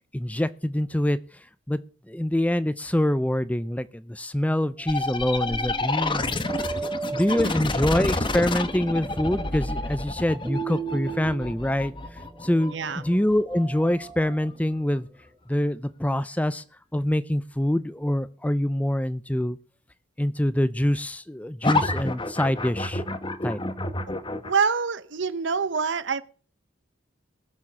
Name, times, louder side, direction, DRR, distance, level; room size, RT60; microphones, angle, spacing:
voice 1, 0.1-1.2 1.7-1.8 2.1-6.4 7.1-12.8 13.0-15.1 15.5-16.6 16.9-19.6 20.2-23.0 23.4-23.6, left 1 dB, 5° left, 0.6 m, -25 dB
sound 1, 4.8-15.2, right 5 dB, 10° right, 2.2 m, -38 dB
sound 2, 4.9-14.3 21.6-24.5, left 2 dB, 25° left, 1.1 m, -29 dB
voice 2, 12.7-13.0 24.4-26.2, right 5 dB, 65° right, 0.8 m, -26 dB
19.0 x 7.3 x 6.2 m
head